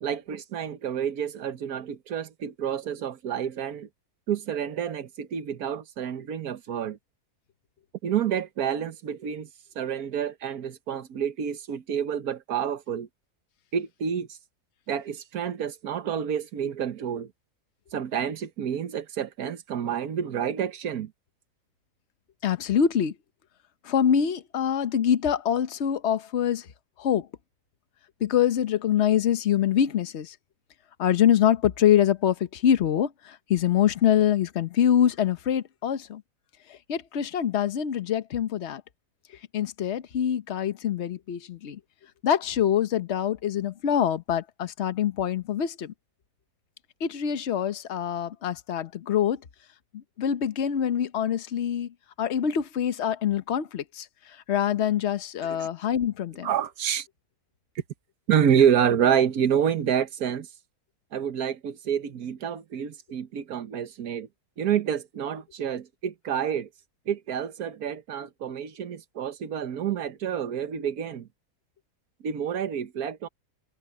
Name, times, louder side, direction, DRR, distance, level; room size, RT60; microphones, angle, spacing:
voice 1, 0.0-3.9 4.3-7.0 8.0-9.5 9.8-13.1 13.7-14.3 14.9-17.3 17.9-21.1 55.4-55.7 56.4-57.1 58.3-60.5 61.1-64.3 64.6-66.7 67.1-71.3 72.2-73.3, right 8 dB, 70° right, 1.6 m, -28 dB
voice 2, 22.4-23.1 23.8-26.7 27.0-27.3 28.2-30.3 31.0-36.2 36.9-38.8 39.5-41.8 42.2-45.9 47.0-49.4 49.9-51.9 52.2-54.1 54.5-56.5, left 9 dB, 50° left, 1.1 m, -25 dB
omnidirectional pair, 1.7 m